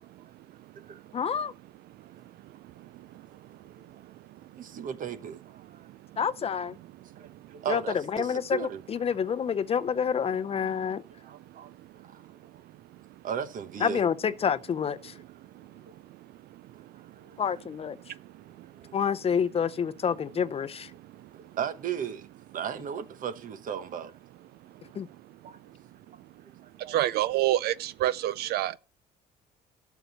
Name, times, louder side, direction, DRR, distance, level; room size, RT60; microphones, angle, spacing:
voice 1, 1.1-1.5 6.2-6.7 7.7-7.8 8.1-11.0 13.8-15.1 17.4-18.0 18.9-20.9 25.0-25.1, left 7 dB, 35° left, 0.6 m, -28 dB
voice 2, 4.5-5.9 7.2-8.8 11.2-11.7 12.1-12.2 13.2-14.1 15.9-16.0 16.9-17.4 18.8-19.0 21.1-22.3 22.5-24.1 25.4-25.6 26.4-26.5 26.8-27.0, right 8 dB, 50° right, 1.1 m, -36 dB
voice 3, 26.9-28.8, right 14 dB, 70° right, 0.4 m, -26 dB
12.5 x 7.0 x 4.0 m
cardioid pair, 110°, 17 cm